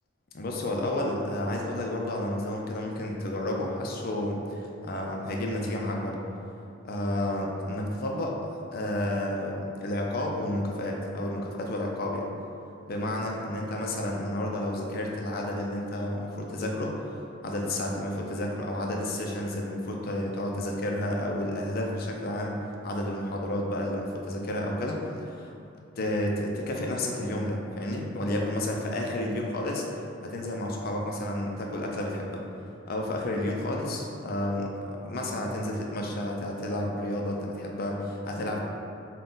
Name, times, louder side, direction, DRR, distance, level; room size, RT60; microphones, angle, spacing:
voice 1, 0.3-6.2 6.8-8.4 8.7-12.3 12.9-25.5 26.0-29.8 30.2-32.4 32.9-38.6, left 1 dB, 50° left, 0 dB, 0.5 m, -31 dB
3.7 x 2.3 x 3.9 m, 2.8 s
head